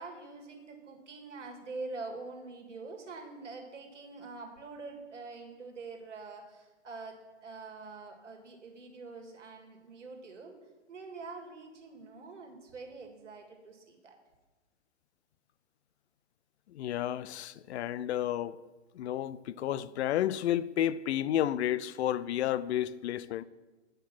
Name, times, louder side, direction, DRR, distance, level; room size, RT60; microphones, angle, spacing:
voice 1, 0.0-10.6 10.9-14.2, right 3 dB, 85° right, 1.9 m, -45 dB
voice 2, 16.7-18.6 18.9-23.4, left 11 dB, 65° left, 0.5 m, -31 dB
9.2 x 5.2 x 5.9 m
hypercardioid pair, 125°, 36 cm